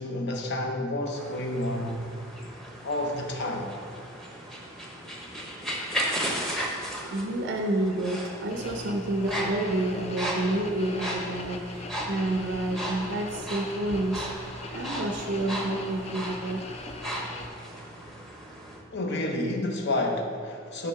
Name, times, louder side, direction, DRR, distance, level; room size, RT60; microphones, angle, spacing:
voice 1, 0.0-2.0 2.8-3.7 18.9-20.9, left 1 dB, 60° left, 3 dB, 0.7 m, -29 dB
sound 1, 1.1-18.8, equal, ahead, 0.8 m, -36 dB
voice 2, 7.1-14.3 14.7-16.6, right 1 dB, 60° right, 2 dB, 0.5 m, -29 dB
sound 2, 8.5-17.5, left 2 dB, 30° left, 0.4 m, -40 dB
5.7 x 4.1 x 5.6 m, 2.3 s
head